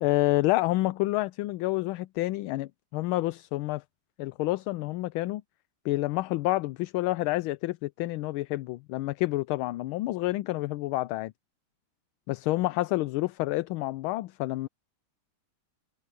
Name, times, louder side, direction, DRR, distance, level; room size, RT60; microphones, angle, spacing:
voice 1, 0.0-3.8 4.2-5.4 5.8-11.3 12.3-14.7, left 18 dB, 80° left, 1.4 m, -28 dB
omnidirectional pair, 2.3 m